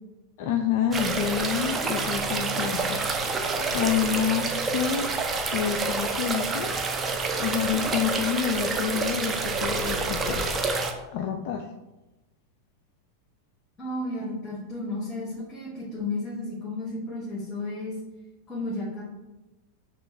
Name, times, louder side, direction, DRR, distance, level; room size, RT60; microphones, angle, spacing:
voice 1, 0.4-3.0 3.4-5.1 5.5-6.7 7.4-10.5 11.1-11.7, left 9 dB, 55° left, 3 dB, 0.3 m, -28 dB
sound 1, 0.9-10.9, right 4 dB, 25° right, 0.5 m, -28 dB
voice 2, 13.8-17.9 18.5-19.0, left 2 dB, 30° left, -6 dB, 1.4 m, -33 dB
6.0 x 2.4 x 3.2 m, 1.0 s
figure-of-eight pair, 90°, 0 cm